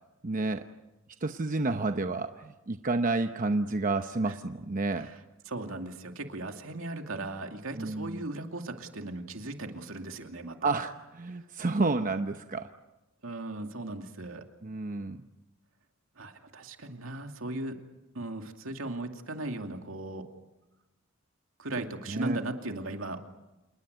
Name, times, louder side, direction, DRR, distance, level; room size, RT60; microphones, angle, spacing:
voice 1, 0.2-0.7 1.2-5.1 7.7-8.2 10.6-12.7 14.6-15.2 22.1-22.4, right 3 dB, 40° right, 7 dB, 0.9 m, -30 dB
voice 2, 5.5-10.8 13.2-14.4 16.2-17.8 18.1-20.3 21.6-23.2, right 2 dB, 75° right, 4 dB, 2.5 m, -37 dB
28.0 x 20.0 x 8.1 m, 1.0 s
head